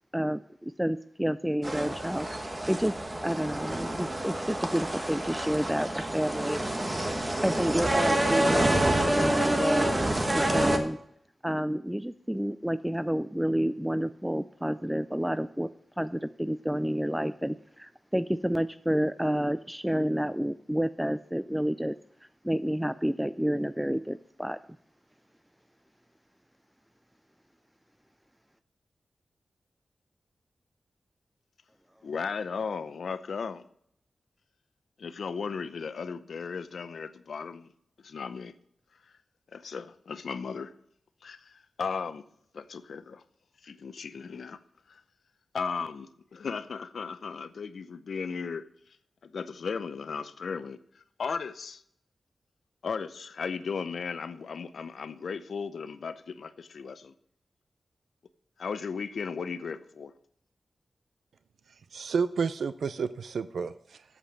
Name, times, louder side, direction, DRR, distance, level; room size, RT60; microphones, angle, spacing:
voice 1, 0.1-2.9 3.2-6.7 7.4-9.9 10.3-11.0 11.4-15.7 16.0-24.6, equal, 5° right, 0.3 m, -30 dB
sound 1, 1.6-10.8, right 1 dB, 20° right, 1.3 m, -28 dB
voice 2, 32.0-33.6 35.0-37.7 38.0-38.5 39.5-40.8 41.2-42.3 42.5-43.2 43.6-44.6 44.9-45.0 45.5-48.7 49.2-51.8 52.8-57.1 58.6-60.1, left 5 dB, 70° left, 0.7 m, -36 dB
voice 3, 61.9-64.0, right 5 dB, 80° right, 0.4 m, -30 dB
8.5 x 7.5 x 7.3 m
wide cardioid pair, 115°, 0 cm